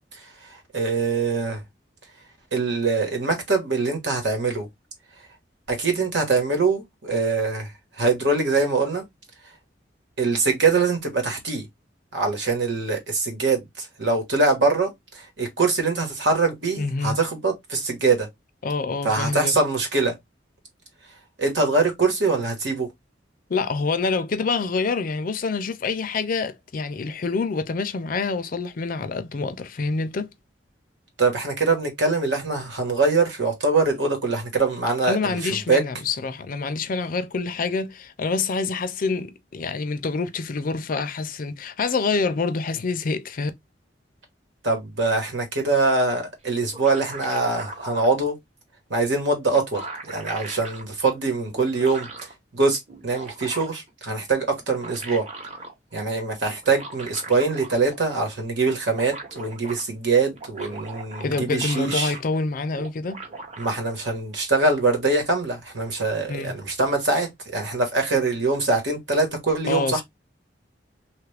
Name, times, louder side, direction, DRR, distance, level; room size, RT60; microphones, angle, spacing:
voice 1, 0.7-1.6 2.5-4.7 5.7-7.7 8.0-9.0 10.2-11.6 12.1-18.3 19.0-20.1 21.4-22.9 31.2-35.8 44.6-48.4 48.9-52.1 52.5-55.2 55.9-62.1 63.6-70.0, right 3 dB, 80° right, 1.3 m, -23 dB
voice 2, 16.8-17.2 18.6-19.5 23.5-30.3 35.1-43.5 61.2-63.2 66.3-66.5 69.7-70.0, left 4 dB, 50° left, 0.4 m, -26 dB
sound 1, 46.5-48.2 49.1-49.2 49.5-50.8 51.5-52.3 52.9-53.9 54.5-55.7 56.6-58.1 58.4-58.5 58.7-59.8 60.3-62.4 62.7-63.8, right 2 dB, 35° right, 0.9 m, -39 dB
3.0 x 2.4 x 3.3 m
head